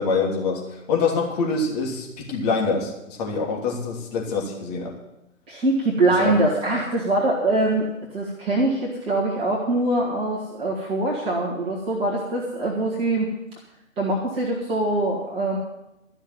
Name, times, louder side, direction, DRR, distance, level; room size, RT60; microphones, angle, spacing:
voice 1, 0.0-4.9 6.2-6.3, left 4 dB, 30° left, -1 dB, 3.1 m, -25 dB
voice 2, 5.5-13.3 14.0-15.6, right 2 dB, 15° right, -4 dB, 2.0 m, -23 dB
13.5 x 6.4 x 9.1 m, 0.90 s
figure-of-eight pair, 135°, 40 cm